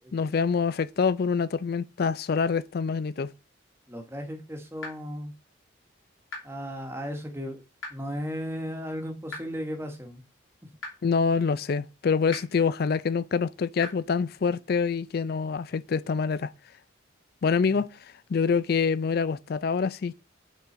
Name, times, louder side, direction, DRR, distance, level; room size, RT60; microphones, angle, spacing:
voice 1, 0.1-3.3 11.0-16.5 17.4-17.9 18.3-20.1, left 5 dB, 50° left, 0.4 m, -26 dB
voice 2, 3.9-5.3 6.4-7.6 7.9-10.2 10.6-10.7 17.7-17.8, equal, 10° right, 1.1 m, -35 dB
sound 1, 4.8-4.9 6.3-6.4 7.8-7.9 9.3-9.4 10.8-10.9 12.3-12.4 13.8-13.9, left 3 dB, 85° left, 3.0 m, -36 dB
8.3 x 3.8 x 4.2 m
head